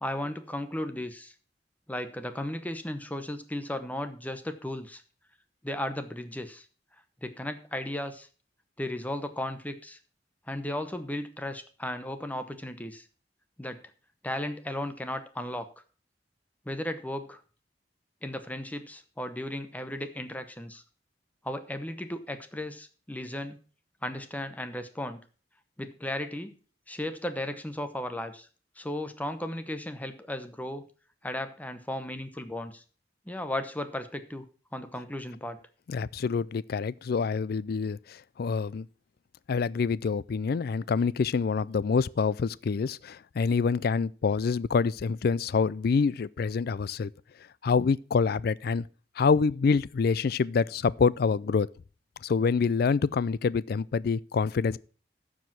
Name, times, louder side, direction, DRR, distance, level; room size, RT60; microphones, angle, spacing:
voice 1, 0.0-1.3 1.9-5.0 5.6-6.6 7.2-8.3 8.8-10.0 10.5-13.0 13.6-13.8 14.2-15.7 16.6-17.4 18.2-20.8 21.4-23.6 24.0-25.2 25.8-26.5 26.9-28.5 28.8-30.8 31.2-32.8 33.3-34.5 34.7-35.6, left 1 dB, 10° left, 0.9 m, -35 dB
voice 2, 35.9-38.9 39.5-47.1 47.6-48.8 49.2-51.7 52.2-54.8, left 5 dB, 60° left, 0.4 m, -26 dB
13.5 x 4.9 x 6.0 m
head